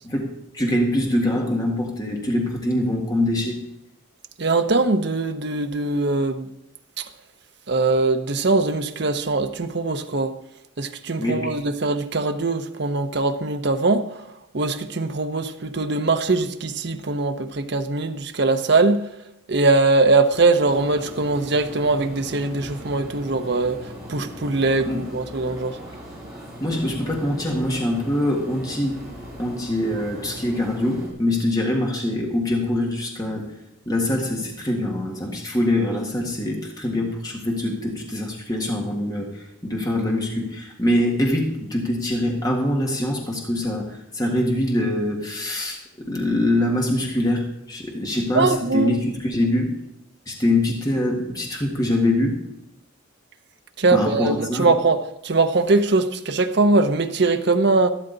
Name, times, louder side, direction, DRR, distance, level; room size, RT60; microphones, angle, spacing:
voice 1, 0.0-3.7 11.2-11.6 24.8-25.1 26.6-29.1 29.4-33.6 33.8-49.8 50.2-52.5 53.9-54.7, left 1 dB, 20° left, 1.8 m, -24 dB
voice 2, 4.4-6.5 7.0-7.1 7.7-10.4 10.8-14.2 14.5-19.1 19.5-25.8 48.3-48.9 53.8-57.9, right 3 dB, 55° right, 0.8 m, -21 dB
sound 1, 20.3-31.1, equal, ahead, 4.8 m, -39 dB
12.5 x 12.5 x 4.0 m
head